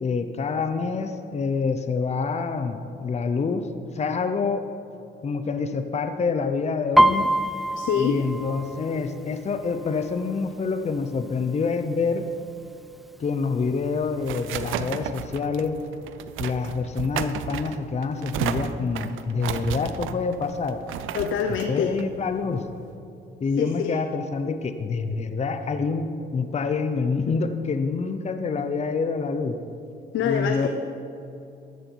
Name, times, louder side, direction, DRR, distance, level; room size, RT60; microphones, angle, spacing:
voice 1, 0.0-3.7 3.9-4.7 5.2-7.3 8.0-12.3 13.2-15.8 16.4-20.8 21.7-22.6 23.4-29.6 30.2-30.7, left 4 dB, 35° left, 8 dB, 0.7 m, -26 dB
Piano, 7.0-10.6 11.0-11.4 11.7-12.3 12.9-13.0 13.3-14.3 14.7-14.8, right 1 dB, ahead, 0.4 m, -24 dB
voice 2, 7.7-8.2 21.1-22.0 23.6-24.0 24.4-24.6 30.1-30.7, left 7 dB, 80° left, 6 dB, 0.7 m, -25 dB
sound 1, 13.6-22.9, right 9 dB, 85° right, 0.6 m, -34 dB
13.5 x 11.0 x 4.6 m, 2.7 s
cardioid pair, 90°, 20 cm